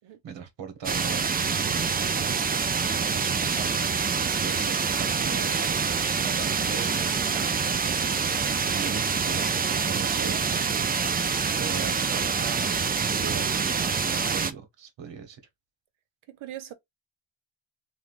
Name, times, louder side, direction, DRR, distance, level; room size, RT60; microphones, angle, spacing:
voice 1, 0.2-2.5 2.9-5.7 6.2-8.3 8.7-10.5 11.5-15.4, right 6 dB, 65° right, 1.3 m, -39 dB
sound 1, 0.8-14.5, right 5 dB, 20° right, 0.3 m, -26 dB
voice 2, 9.8-10.7 16.3-16.7, right 11 dB, 80° right, 0.9 m, -41 dB
3.3 x 2.5 x 2.5 m
cardioid pair, 105°, 48 cm